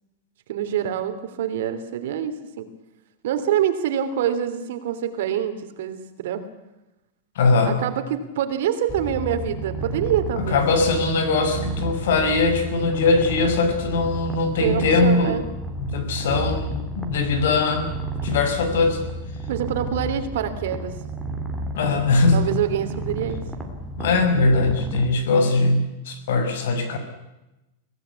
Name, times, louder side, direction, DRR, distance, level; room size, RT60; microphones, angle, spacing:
voice 1, 0.5-2.7 3.2-6.4 7.6-10.6 14.6-15.4 19.5-20.9 21.9-22.0 22.3-23.4, right 9 dB, 60° right, 8 dB, 3.2 m, -26 dB
voice 2, 7.3-7.8 10.4-15.4 15.8-17.9 18.2-19.0 21.8-22.5 24.0-27.0, left 3 dB, 65° left, 8 dB, 6.2 m, -21 dB
Purr, 8.9-25.0, right 2 dB, ahead, 2.9 m, -32 dB
25.0 x 17.5 x 8.4 m, 0.97 s
supercardioid pair, 175°, 0 cm